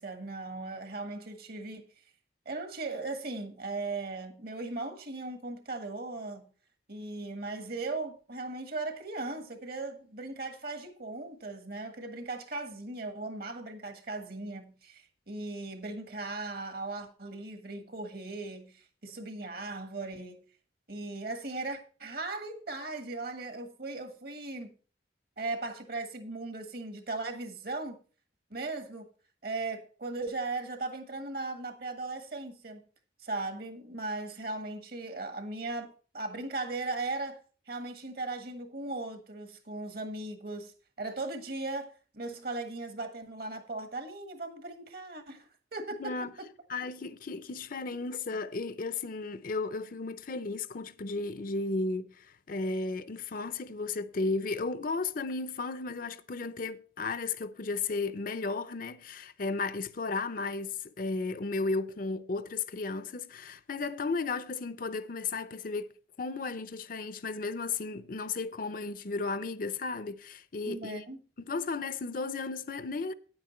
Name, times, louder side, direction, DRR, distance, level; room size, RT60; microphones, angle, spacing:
voice 1, 0.0-1.9 2.4-6.5 6.9-20.4 20.9-24.7 25.4-28.0 28.5-29.1 29.4-32.8 33.2-37.4 37.7-40.7 41.0-46.5 70.6-71.2, right 3 dB, 55° right, 1.5 m, -38 dB
voice 2, 46.0-46.3 46.7-71.0 71.4-73.1, left 3 dB, 50° left, 0.6 m, -34 dB
9.4 x 8.7 x 4.3 m
head